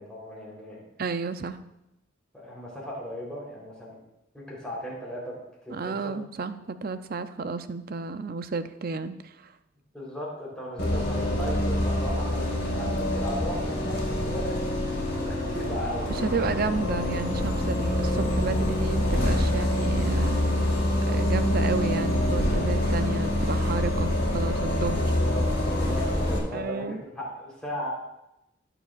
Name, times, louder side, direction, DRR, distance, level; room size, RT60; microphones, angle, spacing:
voice 1, 0.0-0.8 2.3-4.0 4.3-5.4 5.6-6.2 9.9-14.7 15.0-16.6 24.9-27.9, equal, 5° left, -6 dB, 3.4 m, -37 dB
voice 2, 1.0-1.6 5.7-9.5 16.1-20.7 21.1-25.0 26.5-27.0, right 4 dB, 50° right, 11 dB, 0.5 m, -32 dB
Bus, 10.8-26.4, left 1 dB, 55° left, 3.8 m, -26 dB
19.5 x 7.0 x 2.4 m, 0.88 s
head